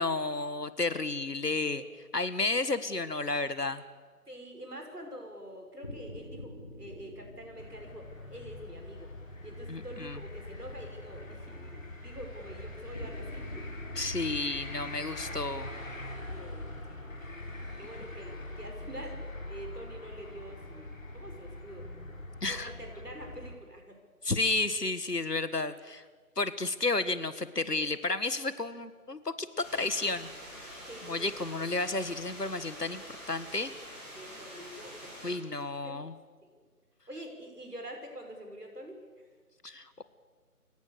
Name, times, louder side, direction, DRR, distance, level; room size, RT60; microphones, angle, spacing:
voice 1, 0.0-1.8 2.1-3.8 9.7-10.2 14.0-15.7 22.4-22.7 24.2-26.0 26.4-30.3 31.0-33.0 33.3-33.7 35.2-36.1 39.6-40.0, left 3 dB, 85° left, 13 dB, 1.9 m, -32 dB
voice 2, 1.6-1.9 4.3-9.1 9.4-14.1 16.3-17.1 17.8-21.9 22.4-24.0 30.9-31.3 34.2-35.1 35.5-36.0 37.1-39.0, right 1 dB, 75° right, 3 dB, 6.3 m, -46 dB
sound 1, 5.8-10.1 12.9-17.6, left 1 dB, 10° left, 1.7 m, -48 dB
sound 2, 7.6-23.6, left 1 dB, 55° left, 4.1 m, -43 dB
sound 3, 29.6-35.3, equal, 5° right, 7.2 m, -46 dB
29.0 x 17.0 x 6.9 m, 1.5 s
figure-of-eight pair, 165°, 47 cm